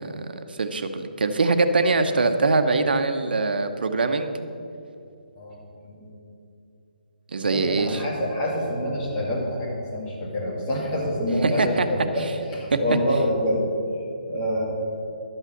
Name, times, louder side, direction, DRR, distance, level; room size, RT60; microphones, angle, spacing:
voice 1, 0.0-4.3 7.3-8.0 11.4-11.9 12.7-12.8, right 3 dB, 75° right, 8 dB, 0.9 m, -23 dB
voice 2, 7.4-12.2 12.5-13.6 14.3-14.6, equal, 20° left, -5 dB, 2.6 m, -26 dB
12.0 x 5.6 x 7.2 m, 2.6 s
hypercardioid pair, 160°, 5 cm